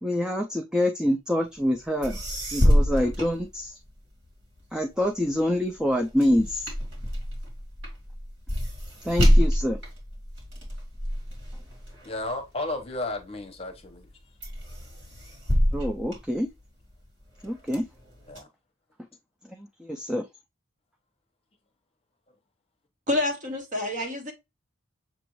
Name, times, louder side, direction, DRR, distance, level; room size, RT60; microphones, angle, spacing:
voice 1, 0.0-2.2 2.5-3.8 4.7-6.7 9.0-9.8 15.7-16.5 17.4-17.9 19.5-20.3, left 1 dB, 5° right, 0.4 m, -26 dB
sound 1, 1.7-1.8 2.0-4.1 4.6-13.2 13.7-14.1 14.4-16.9 17.4-18.4, equal, 65° right, 2.3 m, -26 dB
voice 2, 12.0-14.1 18.3-18.5, left 2 dB, 30° left, 0.9 m, -33 dB
voice 3, 23.1-24.3, left 2 dB, 40° right, 1.3 m, -28 dB
6.8 x 2.4 x 3.0 m
head